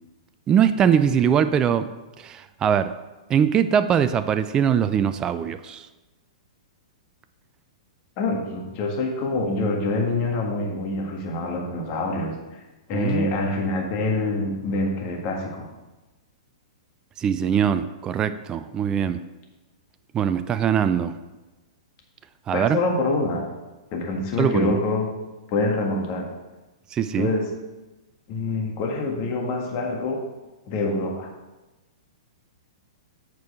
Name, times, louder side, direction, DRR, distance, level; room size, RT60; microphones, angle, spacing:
voice 1, 0.5-1.9 2.2-2.9 3.3-5.9 12.9-13.3 17.2-19.2 20.1-21.1 22.5-22.8 24.4-24.8 26.9-27.3, right 8 dB, 25° right, 11 dB, 0.4 m, -22 dB
voice 2, 8.2-12.6 12.9-15.7 22.5-23.5 23.9-25.1 25.5-26.3 27.1-27.5 28.3-30.2 30.7-31.3, left 2 dB, 40° left, 1 dB, 1.7 m, -25 dB
8.2 x 4.6 x 4.8 m, 1.1 s
hypercardioid pair, 115°, 3 cm